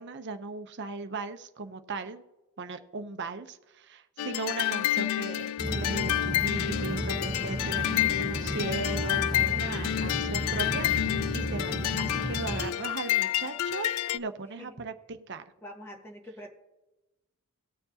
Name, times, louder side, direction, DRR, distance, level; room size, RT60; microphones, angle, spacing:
voice 1, 0.0-2.2 2.6-15.4, right 3 dB, 55° right, 9 dB, 0.7 m, -38 dB
sound 1, 4.2-14.2, left 13 dB, 85° left, 0.3 m, -29 dB
sound 2, 5.6-12.7, right 1 dB, 20° right, 0.8 m, -34 dB
voice 2, 15.6-16.5, equal, 10° left, 2 dB, 1.4 m, -44 dB
19.0 x 6.9 x 2.8 m, 1.0 s
head